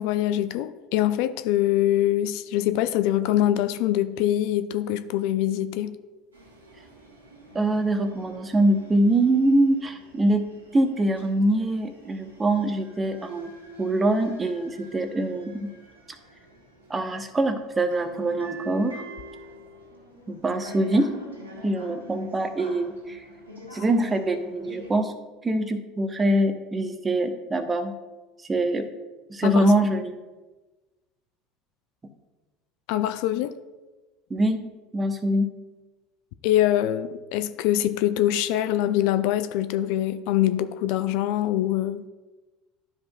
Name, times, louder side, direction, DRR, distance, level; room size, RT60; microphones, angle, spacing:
voice 1, 0.0-6.0 29.4-29.7 32.9-33.5 36.4-42.0, left 12 dB, 60° left, 0.3 m, -24 dB
sound 1, 6.3-24.9, right 1 dB, 80° right, 2.1 m, -45 dB
voice 2, 7.5-10.4 10.7-13.5 13.8-15.7 16.9-19.0 20.3-21.1 21.6-23.2 23.7-25.1 25.4-27.9 28.5-28.9 29.3-30.2 34.3-34.6 34.9-35.5, right 1 dB, 20° right, 0.8 m, -24 dB
12.5 x 5.2 x 2.3 m
figure-of-eight pair, 70°, 0 cm